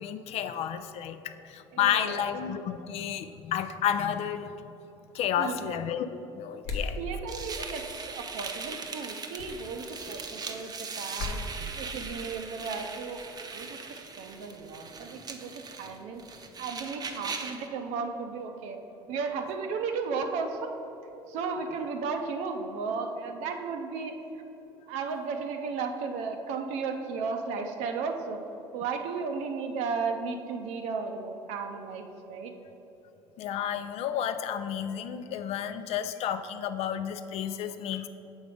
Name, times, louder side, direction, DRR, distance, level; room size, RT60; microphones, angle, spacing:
voice 1, 0.0-4.5 5.1-6.1 6.4-7.0 33.4-38.1, left 9 dB, 60° left, 10 dB, 0.4 m, -31 dB
voice 2, 1.7-2.3 5.4-5.8 6.7-13.2 13.5-13.8 14.2-16.2 16.6-18.8 19.1-20.7 21.3-24.1 24.9-28.4 28.7-32.5, right 5 dB, 70° right, 4 dB, 0.6 m, -34 dB
sound 1, 6.6-7.0 9.4-9.6 11.2-11.4, left 4 dB, 85° left, 0.8 m, -33 dB
sound 2, 7.3-17.7, right 4 dB, 30° right, 0.6 m, -40 dB
7.1 x 4.0 x 4.9 m, 3.0 s
hypercardioid pair, 70°, 12 cm